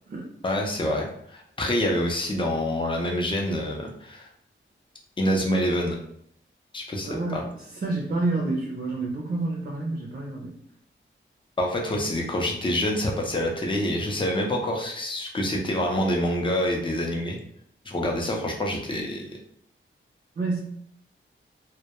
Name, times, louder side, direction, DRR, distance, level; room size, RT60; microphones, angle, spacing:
voice 1, 0.4-4.3 5.2-6.0 6.7-7.4 11.6-17.4 17.9-19.4, left 1 dB, 25° left, 0 dB, 0.5 m, -26 dB
voice 2, 7.0-7.4 7.8-10.6 20.4-20.6, right 2 dB, 40° right, -1 dB, 0.5 m, -28 dB
2.1 x 2.0 x 2.9 m, 0.68 s
wide cardioid pair, 90°, 21 cm